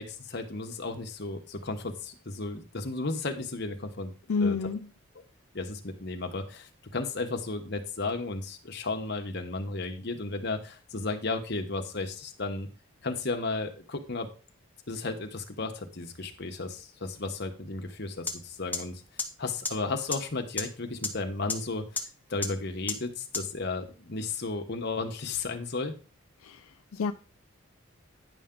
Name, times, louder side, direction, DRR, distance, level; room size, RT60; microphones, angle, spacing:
voice 1, 0.0-4.1 4.4-4.6 5.5-12.7 13.0-14.3 14.9-19.0 19.4-22.0 22.3-25.9, left 3 dB, 50° left, 1.1 m, -34 dB
voice 2, 4.3-4.8 26.4-26.6 26.9-27.1, left 4 dB, 80° left, 0.4 m, -28 dB
sound 1, 18.3-18.4 18.7-18.8 19.2-19.3 19.6-19.7 20.1-20.2 20.6-20.7 21.0-21.1 21.5-21.6 22.0-22.1 22.4-22.5 22.9-23.0 23.3-23.4, left 4 dB, 10° left, 0.8 m, -29 dB
10.0 x 5.7 x 3.8 m
head